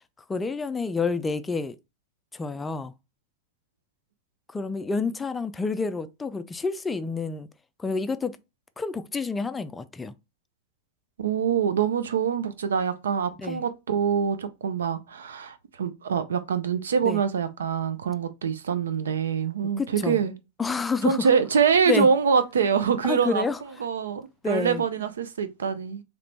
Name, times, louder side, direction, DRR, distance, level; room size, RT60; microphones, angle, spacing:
voice 1, 0.3-1.8 2.3-2.9 4.5-7.5 7.8-8.4 8.8-10.1 13.4-13.6 17.0-17.2 19.8-20.2 20.6-21.3 21.9-22.1 23.0-23.6 24.4-24.8, left 4 dB, 15° left, 0.3 m, -28 dB
voice 2, 11.2-20.3 21.0-23.4 23.8-24.2 24.5-26.0, right 6 dB, 65° right, 0.5 m, -24 dB
3.8 x 3.2 x 3.2 m
figure-of-eight pair, 90°, 0 cm